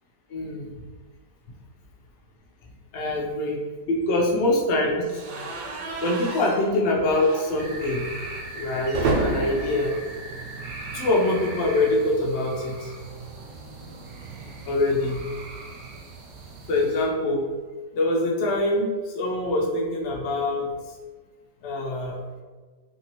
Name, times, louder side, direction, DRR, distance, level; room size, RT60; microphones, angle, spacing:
voice 1, 0.3-0.8 2.9-5.2 6.0-8.1 8.5-9.9 10.9-12.9 14.7-15.2 16.7-17.4 17.9-20.7 21.6-22.2, left 2 dB, 60° left, -2 dB, 0.8 m, -24 dB
sound 1, 5.1-11.1 11.4-11.6 11.9-12.0 13.2-15.6, right 3 dB, 85° right, 1.2 m, -32 dB
sound 2, 7.6-17.1, right 3 dB, 65° right, 0.9 m, -39 dB
2.9 x 2.9 x 2.9 m, 1.4 s
omnidirectional pair, 1.8 m